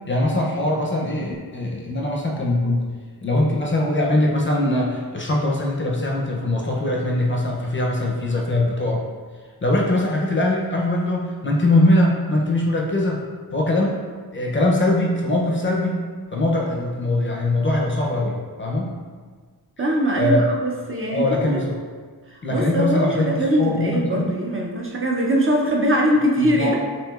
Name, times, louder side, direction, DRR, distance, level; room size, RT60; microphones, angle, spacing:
voice 1, 0.1-2.8 3.2-9.0 9.6-13.2 13.5-14.0 14.3-16.0 16.3-18.9 20.2-20.4 21.1-21.8 22.4-24.4 26.4-26.7, left 1 dB, 30° left, -1 dB, 0.5 m, -21 dB
voice 2, 19.8-21.2 22.5-26.7, equal, 35° right, -2 dB, 0.4 m, -21 dB
6.1 x 2.7 x 2.3 m, 1.5 s
wide cardioid pair, 170°, 38 cm